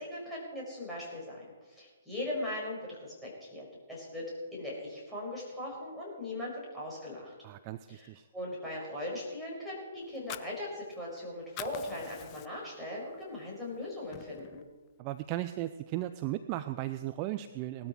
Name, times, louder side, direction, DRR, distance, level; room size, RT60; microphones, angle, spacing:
voice 1, 0.0-7.3 7.9-14.7, left 1 dB, ahead, -6 dB, 5.5 m, -39 dB
voice 2, 7.4-8.3 15.0-17.9, right 15 dB, 30° right, 12 dB, 0.5 m, -36 dB
Fire, 10.0-11.2 11.4-12.8 13.2-13.4 13.7-14.7, left 13 dB, 25° left, 0.6 m, -45 dB
18.5 x 12.5 x 4.7 m, 1.3 s
figure-of-eight pair, 125°, 0 cm